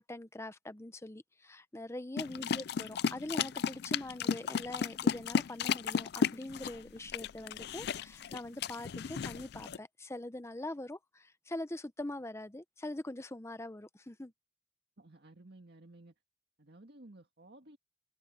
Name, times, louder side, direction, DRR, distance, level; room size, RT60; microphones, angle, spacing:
voice 1, 0.0-14.3, left 1 dB, 15° left, 0.8 m, -43 dB
sound 1, 2.2-9.8, left 6 dB, 60° left, 0.4 m, -34 dB
voice 2, 2.3-2.6 15.0-16.1 16.6-17.8, right 2 dB, 60° right, 1.9 m, -55 dB
open air
head